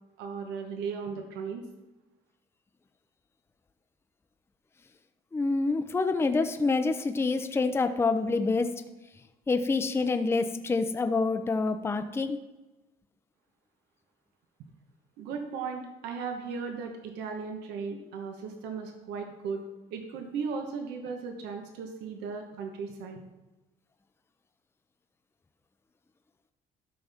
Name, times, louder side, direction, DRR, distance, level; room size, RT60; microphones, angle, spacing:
voice 1, 0.2-1.6 15.2-19.6 19.9-23.2, right 5 dB, 90° right, 4 dB, 1.3 m, -36 dB
voice 2, 5.3-8.7 9.5-12.4, left 3 dB, 15° left, 8 dB, 0.6 m, -27 dB
12.5 x 5.9 x 3.5 m, 1.1 s
cardioid pair, 110°, 17 cm